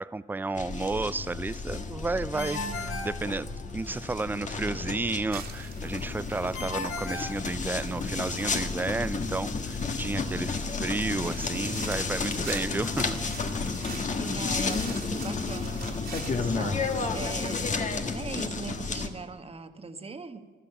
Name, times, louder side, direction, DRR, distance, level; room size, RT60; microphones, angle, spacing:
voice 1, 0.0-2.6 3.0-3.5 3.7-13.2 16.4-16.8, right 3 dB, 10° right, 18 dB, 0.4 m, -32 dB
sound 1, 0.6-19.1, left 4 dB, 40° left, 1.5 m, -32 dB
voice 2, 2.3-3.1 14.2-20.6, right 4 dB, 30° right, 8 dB, 1.3 m, -40 dB
Ringtone, 2.4-4.0 6.5-8.2, left 3 dB, 90° left, 2.0 m, -37 dB
sound 2, 5.3-17.7, right 6 dB, 50° right, 2.3 m, -46 dB
13.0 x 11.5 x 8.7 m, 1.5 s
cardioid pair, 90°, 20 cm